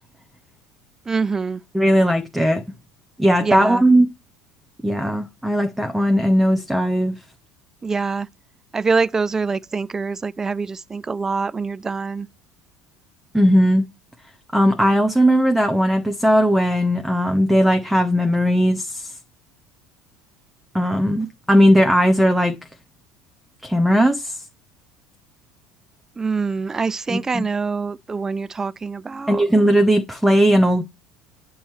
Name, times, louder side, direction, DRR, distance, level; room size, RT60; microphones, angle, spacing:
voice 1, 1.1-1.6 3.4-3.8 7.8-8.3 8.7-12.3 26.2-29.5, right 4 dB, 20° right, 0.3 m, -24 dB
voice 2, 1.7-2.6 3.2-4.1 4.8-7.2 13.3-13.8 14.5-19.1 20.7-22.6 23.6-24.4 27.1-27.4 29.3-30.8, equal, 5° right, 0.9 m, -17 dB
8.8 x 3.1 x 4.4 m
hypercardioid pair, 70°, 2 cm